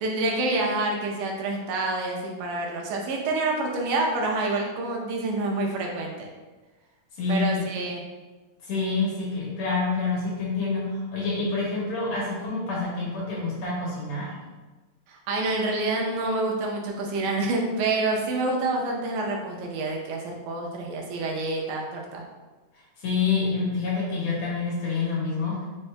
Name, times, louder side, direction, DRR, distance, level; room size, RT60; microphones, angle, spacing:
voice 1, 0.0-6.3 7.3-8.0 15.1-22.2, right 2 dB, 80° right, 0 dB, 2.2 m, -27 dB
voice 2, 8.7-14.3 23.0-25.6, left 4 dB, 65° left, -7 dB, 2.1 m, -27 dB
5.3 x 2.7 x 3.2 m, 1.2 s
omnidirectional pair, 3.7 m